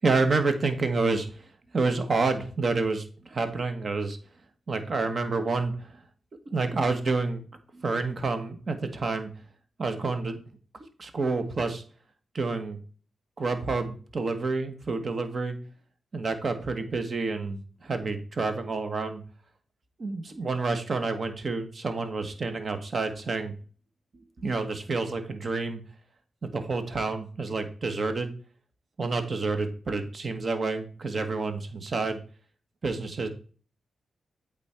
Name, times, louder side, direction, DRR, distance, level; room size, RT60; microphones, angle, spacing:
voice 1, 0.0-1.3 1.7-4.2 4.7-5.9 6.5-7.4 7.7-9.3 9.8-10.4 11.0-11.8 12.3-12.8 13.4-15.6 16.1-19.2 20.0-23.5 24.4-25.8 26.4-28.3 29.0-32.2 32.8-33.3, right 3 dB, 55° right, 8 dB, 1.4 m, -28 dB
8.4 x 4.1 x 4.4 m, 0.40 s
supercardioid pair, 45°, 0 cm